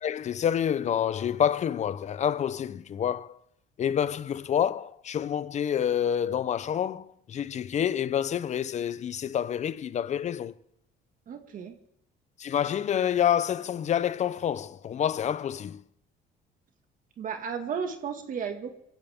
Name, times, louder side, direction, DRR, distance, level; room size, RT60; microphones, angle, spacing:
voice 1, 0.0-3.4 3.8-10.5 12.4-15.8, left 9 dB, 45° left, 0.7 m, -28 dB
voice 2, 11.3-11.7 17.2-18.8, right 6 dB, 55° right, 2.1 m, -34 dB
24.5 x 14.5 x 3.7 m
cardioid pair, 110°, 17 cm